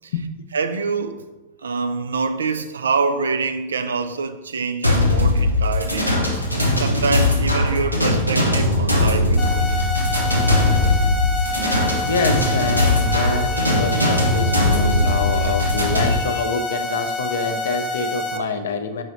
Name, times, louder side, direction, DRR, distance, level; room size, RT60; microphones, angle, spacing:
voice 1, 0.5-1.2 1.6-6.4 6.8-9.7, right 4 dB, 70° right, 0.4 m, -25 dB
sound 1, 4.8-16.1, left 2 dB, 90° right, 0.9 m, -19 dB
sound 2, 9.4-18.4, equal, 25° left, 0.7 m, -27 dB
voice 2, 12.1-19.0, left 5 dB, 65° left, 0.5 m, -26 dB
4.9 x 4.9 x 3.9 m
figure-of-eight pair, 90°, 0 cm